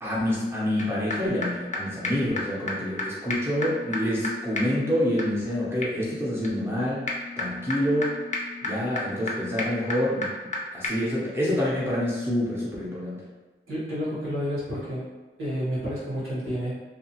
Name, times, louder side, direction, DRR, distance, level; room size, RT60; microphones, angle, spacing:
voice 1, 0.0-7.1 7.4-8.2 8.6-13.2, equal, 10° right, -6 dB, 0.6 m, -27 dB
sound 1, 0.8-0.9 1.1-1.2 1.4-1.5 1.7-1.8 2.0-2.1 2.4-2.5 2.7-2.8 3.0-3.1 3.3-10.6 10.8-10.9, left 2 dB, 35° left, 0.4 m, -33 dB
voice 2, 13.7-15.1 15.4-16.7, equal, 85° right, -8 dB, 1.2 m, -30 dB
2.6 x 2.3 x 2.8 m, 1.2 s
wide cardioid pair, 135°, 21 cm